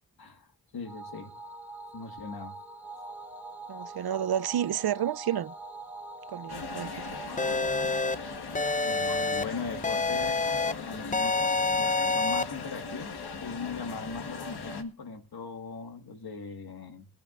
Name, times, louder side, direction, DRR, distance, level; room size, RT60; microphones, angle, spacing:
voice 1, 0.2-1.3 1.9-2.6 8.8-17.1, left 4 dB, 75° left, 1.8 m, -40 dB
sound 1, 0.9-9.5, right 2 dB, 5° right, 2.8 m, -44 dB
voice 2, 3.7-5.5 6.3-7.1, right 10 dB, 75° right, 0.6 m, -30 dB
sound 2, 6.5-14.8, left 4 dB, 90° left, 1.5 m, -39 dB
sound 3, 7.4-8.1 8.5-9.4 9.8-10.7 11.1-12.4, left 3 dB, 20° left, 0.6 m, -27 dB
20.5 x 10.5 x 2.5 m
wide cardioid pair, 75°, 38 cm